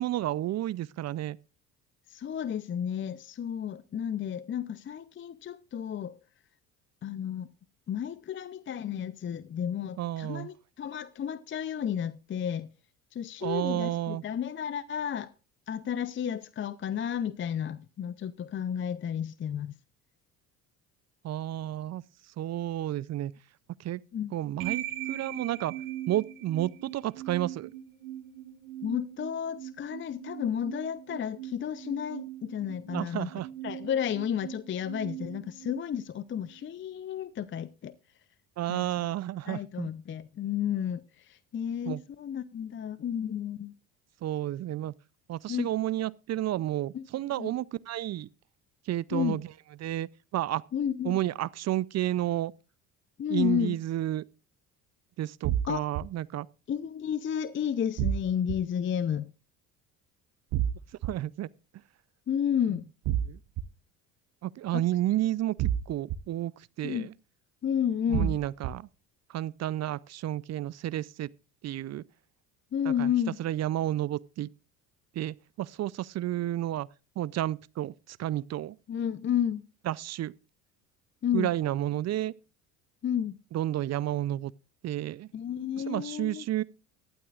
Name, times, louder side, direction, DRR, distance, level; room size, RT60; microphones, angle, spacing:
voice 1, 0.0-1.4 10.0-10.5 13.4-14.2 21.2-22.0 22.4-23.3 23.8-24.0 24.3-25.7 26.1-27.7 32.9-33.5 38.6-39.9 41.9-42.0 44.2-44.9 45.3-48.3 48.9-49.5 49.8-50.6 51.0-52.5 53.3-54.2 55.2-56.5 61.0-61.5 63.3-63.4 64.4-65.5 65.9-66.5 66.8-67.1 68.1-68.9 69.3-71.3 71.6-72.0 73.0-73.1 73.4-74.5 75.2-76.9 77.2-78.8 79.9-80.3 81.3-82.3 83.5-84.5 84.8-85.3 85.9-86.6, right 13 dB, 40° right, 0.5 m, -31 dB
voice 2, 2.1-6.2 7.0-7.5 7.9-12.7 13.1-15.3 15.7-19.8 24.1-24.3 28.8-33.3 33.6-37.9 38.7-38.9 39.5-43.7 45.5-45.7 46.9-47.1 47.4-47.5 49.1-49.4 50.7-51.2 53.2-53.8 55.7-55.8 56.7-59.3 62.3-62.9 64.7-64.8 66.8-67.1 67.6-68.4 72.7-73.4 78.9-79.6 81.2-81.5 83.0-83.4 85.3-86.4, left 9 dB, 30° left, 0.5 m, -32 dB
sound 1, 24.6-36.7, right 12 dB, 90° right, 1.7 m, -41 dB
sound 2, 55.4-56.0 58.0-58.6 60.5-61.1 63.0-63.6 65.6-66.2 68.1-68.7, right 11 dB, 55° right, 0.9 m, -28 dB
18.0 x 12.0 x 2.4 m
hypercardioid pair, 70°, 41 cm